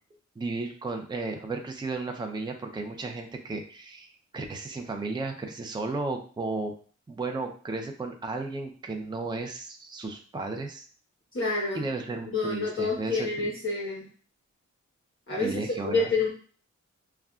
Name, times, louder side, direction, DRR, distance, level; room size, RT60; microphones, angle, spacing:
voice 1, 0.4-6.7 7.1-10.9 11.7-13.5 15.4-16.1, right 3 dB, 15° right, 3 dB, 0.5 m, -34 dB
voice 2, 11.3-11.8 12.3-14.1 15.3-16.3, left 3 dB, 45° left, -4 dB, 1.1 m, -28 dB
6.6 x 2.3 x 2.4 m, 0.42 s
wide cardioid pair, 105°, 29 cm